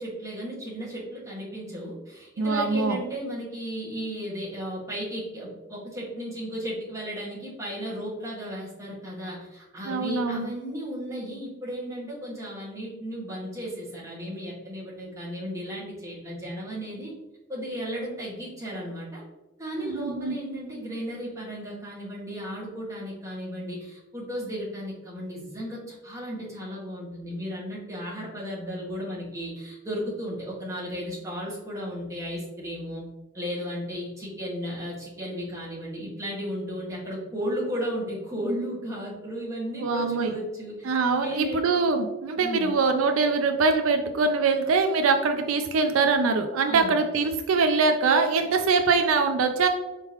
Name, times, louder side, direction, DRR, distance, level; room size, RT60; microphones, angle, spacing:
voice 1, 0.0-17.1 17.5-19.2 19.6-33.0 33.3-41.7 42.4-42.7 46.7-46.9, equal, 15° right, -6 dB, 1.5 m, -34 dB
voice 2, 2.4-3.0 9.9-10.5 19.7-20.4 39.8-40.3 40.8-49.7, right 4 dB, 80° right, 6 dB, 0.4 m, -23 dB
4.5 x 3.7 x 2.9 m, 1.0 s
head